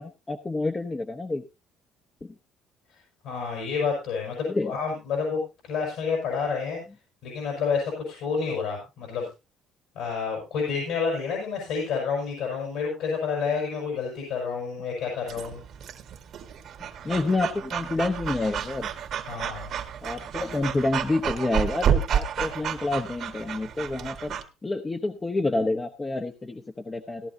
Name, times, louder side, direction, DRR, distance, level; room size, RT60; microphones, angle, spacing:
voice 1, 0.0-1.4 2.2-2.3 4.4-4.7 17.0-18.9 20.0-24.4 24.6-27.3, left 2 dB, 20° left, 3 dB, 0.9 m, -28 dB
voice 2, 3.2-6.8 7.2-9.3 9.9-15.6 19.3-19.7, left 5 dB, 75° left, -1 dB, 5.8 m, -29 dB
Breathing / Dog, 15.3-24.4, right 8 dB, 55° right, 1.6 m, -30 dB
16.5 x 11.5 x 2.7 m, 0.27 s
cardioid pair, 115°, 0 cm